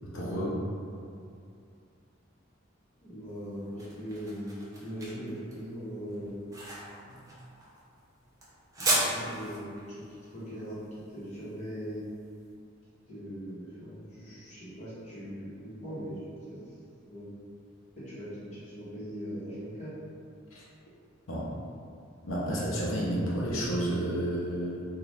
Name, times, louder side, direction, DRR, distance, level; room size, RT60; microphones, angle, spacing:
voice 1, 0.1-0.6 7.0-7.2 20.5-20.6 21.3-21.5 22.2-24.8, right 1 dB, 85° left, -6 dB, 0.7 m, -31 dB
voice 2, 3.0-6.3 8.8-10.0 10.3-10.8 11.1-12.0 13.1-16.2 16.5-16.7 17.1-17.3 18.0-19.9, equal, 35° left, -11 dB, 1.1 m, -40 dB
sound 1, 3.3-12.3, right 1 dB, 15° right, 0.6 m, -35 dB
2.7 x 2.4 x 3.4 m, 2.4 s
head